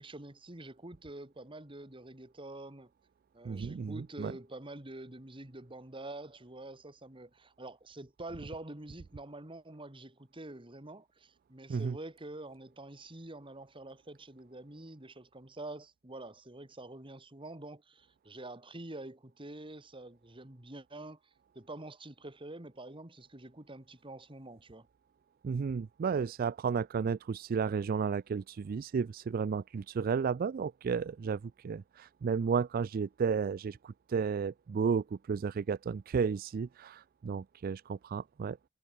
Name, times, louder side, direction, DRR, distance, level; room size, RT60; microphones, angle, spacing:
voice 1, 0.0-2.9 3.3-21.2 21.6-24.9, right 2 dB, 25° right, 2.1 m, -47 dB
voice 2, 3.4-4.3 11.7-12.0 25.4-38.6, right 6 dB, 45° right, 0.3 m, -33 dB
head